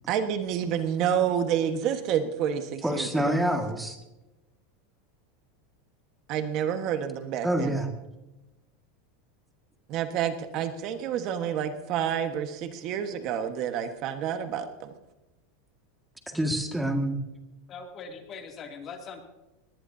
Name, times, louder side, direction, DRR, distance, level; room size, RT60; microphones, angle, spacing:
voice 1, 0.1-3.4 6.3-7.8 9.9-14.9, right 9 dB, 45° right, 7 dB, 1.4 m, -29 dB
voice 2, 2.8-4.0 7.4-7.9 16.3-17.2, right 1 dB, 5° right, 4 dB, 1.9 m, -27 dB
voice 3, 17.7-19.2, left 5 dB, 30° left, 3 dB, 2.7 m, -41 dB
19.5 x 19.0 x 2.8 m, 1.0 s
supercardioid pair, 135°, 0 cm